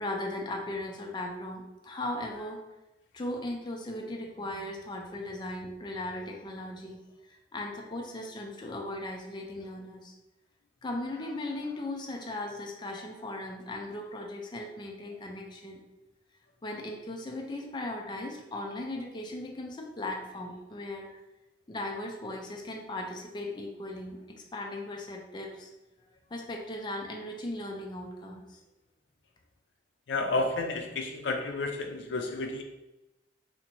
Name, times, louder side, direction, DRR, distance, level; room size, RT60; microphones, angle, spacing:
voice 1, 0.0-2.6 3.1-7.0 7.3-10.1 10.8-15.8 16.6-21.1 21.7-25.7 26.3-28.6, left 1 dB, 25° left, 1 dB, 0.4 m, -37 dB
voice 2, 30.1-32.6, left 2 dB, 80° left, 4 dB, 0.5 m, -31 dB
2.8 x 2.6 x 4.3 m, 1.0 s
head